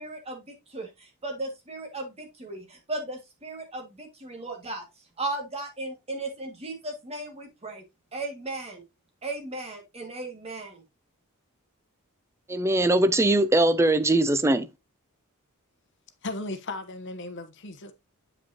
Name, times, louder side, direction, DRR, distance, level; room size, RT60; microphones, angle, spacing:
voice 1, 0.0-4.8 5.2-7.8 8.1-8.8 9.2-10.8, right 2 dB, 25° right, 2.0 m, -36 dB
voice 2, 12.5-14.7, right 1 dB, 10° right, 0.4 m, -21 dB
voice 3, 16.2-17.9, left 2 dB, 55° left, 1.0 m, -36 dB
8.8 x 5.2 x 2.8 m
head